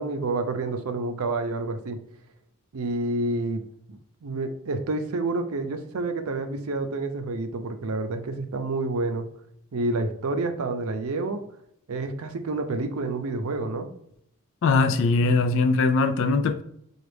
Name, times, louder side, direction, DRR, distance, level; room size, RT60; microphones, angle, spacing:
voice 1, 0.0-2.0 2.7-3.6 3.9-9.3 9.7-11.4 11.9-13.9, right 2 dB, 70° right, 0.5 m, -29 dB
voice 2, 14.6-16.6, left 3 dB, 60° left, 0.3 m, -21 dB
6.7 x 2.4 x 3.3 m
head